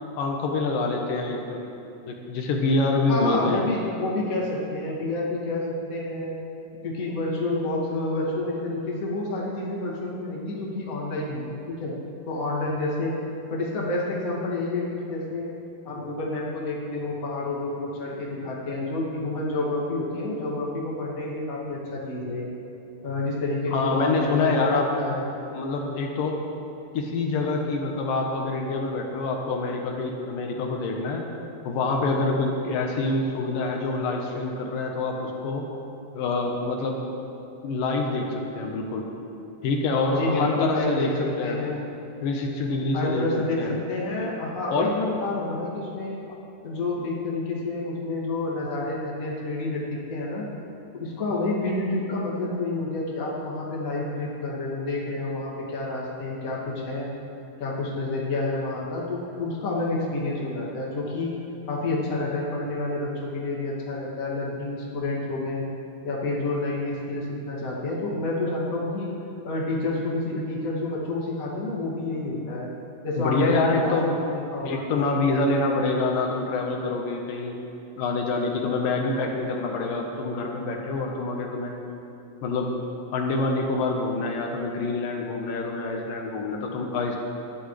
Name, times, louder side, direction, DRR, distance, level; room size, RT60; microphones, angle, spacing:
voice 1, 0.2-1.6 2.1-3.6 23.7-24.9 25.5-26.4 26.9-31.2 31.6-35.6 36.1-37.0 37.6-39.0 39.6-41.6 42.2-43.3 43.6-43.7 44.7-44.9 46.3-46.4 73.2-74.1 74.7-77.6 78.0-81.7 82.4-82.8 83.1-87.2, left 3 dB, 80° left, 1 dB, 2.7 m, -26 dB
voice 2, 3.1-6.3 6.8-11.9 12.3-13.1 13.5-15.5 15.8-22.5 23.0-25.3 40.1-41.1 41.4-41.8 42.9-46.2 46.6-50.4 50.9-57.1 57.6-61.3 61.7-65.6 66.0-69.1 69.4-72.7 73.0-74.0 74.3-74.8, left 2 dB, 30° left, -5 dB, 2.1 m, -29 dB
20.0 x 12.5 x 3.3 m, 2.8 s
omnidirectional pair, 4.0 m